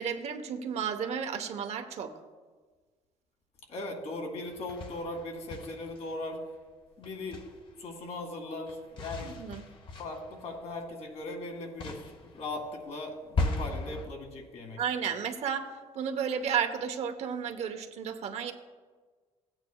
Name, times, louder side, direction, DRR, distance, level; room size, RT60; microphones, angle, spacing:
voice 1, 0.0-2.1 9.2-9.6 14.8-15.7 15.9-18.5, right 7 dB, 65° right, 6 dB, 0.9 m, -32 dB
voice 2, 3.7-6.4 7.0-7.4 7.8-9.4 10.0-14.8, left 2 dB, 65° left, 2 dB, 2.1 m, -39 dB
sound 1, 4.5-6.4 7.0-7.9 8.7-11.4 11.8-14.1, left 3 dB, 45° left, 1.0 m, -37 dB
15.5 x 8.9 x 2.3 m, 1.4 s
cardioid pair, 115°, 12 cm